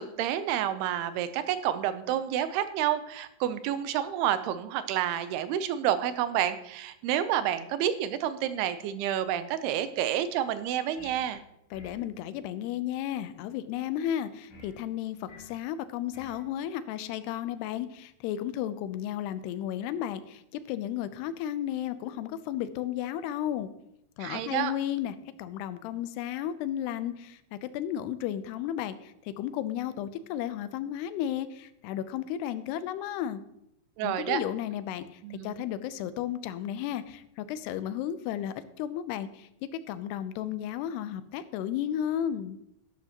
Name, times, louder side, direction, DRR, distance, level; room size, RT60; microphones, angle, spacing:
voice 1, 0.0-11.4 24.2-24.7 34.0-34.4 35.2-35.6, right 11 dB, 90° right, 12 dB, 2.6 m, -29 dB
sound 1, 11.0-11.3 11.7-12.1 14.5-14.8 15.3-15.6 16.1-16.4, left 3 dB, 50° left, 4.1 m, -50 dB
voice 2, 11.7-23.7 24.2-33.4 34.0-39.5 39.9-42.6, left 11 dB, 90° left, 13 dB, 2.7 m, -33 dB
12.0 x 11.5 x 2.9 m, 0.80 s
omnidirectional pair, 4.6 m